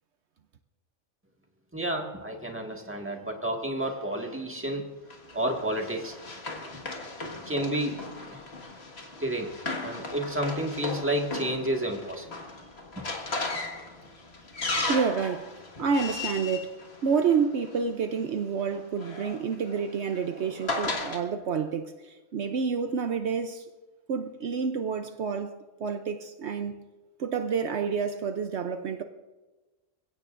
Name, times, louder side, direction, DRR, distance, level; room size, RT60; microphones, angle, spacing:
voice 1, 1.7-4.9 5.3-6.2 7.5-8.4 9.2-9.5 9.8-12.3 13.0-13.1, right 1 dB, 10° right, 1.7 m, -30 dB
Run, 5.1-17.7 18.7-21.2, left 2 dB, 60° left, 2.0 m, -36 dB
voice 2, 14.9-23.7 24.1-26.8 27.2-29.0, right 6 dB, 70° right, 1.0 m, -29 dB
27.5 x 16.5 x 2.6 m
omnidirectional pair, 1.2 m